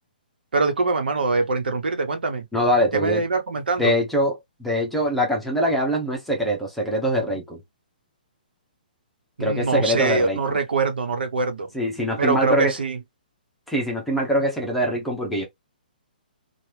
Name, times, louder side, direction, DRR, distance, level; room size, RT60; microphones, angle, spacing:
voice 1, 0.5-2.4 2.9-3.9 9.4-11.7 12.2-13.0, right 3 dB, 90° right, 1.0 m, -23 dB
voice 2, 2.5-3.3 3.8-7.6 9.4-10.4 11.7-12.7 13.7-15.4, equal, ahead, 0.7 m, -23 dB
2.9 x 2.4 x 3.3 m
hypercardioid pair, 165°, 5 cm